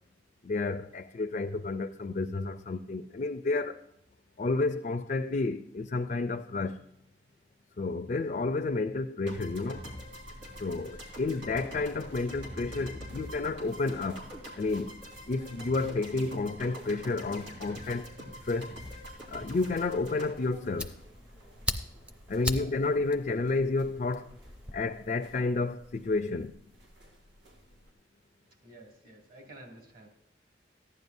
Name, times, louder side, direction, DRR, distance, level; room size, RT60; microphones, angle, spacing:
voice 1, 0.4-3.8 4.4-6.8 7.8-9.9 10.6-14.3 14.6-15.0 15.3-18.1 18.4-18.8 19.3-20.9 22.3-24.4 24.7-26.6, left 3 dB, 45° left, 0.4 m, -31 dB
sound 1, 9.3-27.9, equal, 70° right, 1.7 m, -56 dB
sound 2, 9.3-21.5, equal, 90° right, 3.4 m, -45 dB
Fire, 20.2-24.8, equal, 5° right, 0.6 m, -39 dB
voice 2, 22.4-22.8 28.6-30.1, right 1 dB, 50° right, 2.5 m, -51 dB
15.0 x 10.5 x 2.7 m
head